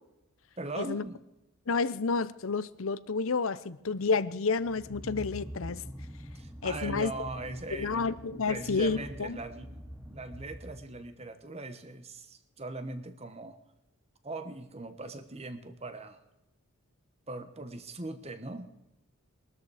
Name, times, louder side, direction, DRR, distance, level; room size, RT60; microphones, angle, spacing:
voice 1, 0.6-1.2 6.3-13.6 14.2-16.2 17.3-18.7, right 2 dB, 30° right, 1.2 m, -40 dB
voice 2, 1.7-5.8 6.6-7.1 7.7-9.4, left 4 dB, 65° left, 0.7 m, -30 dB
sound 1, 4.6-11.1, equal, 5° right, 1.0 m, -45 dB
21.5 x 13.5 x 4.9 m
head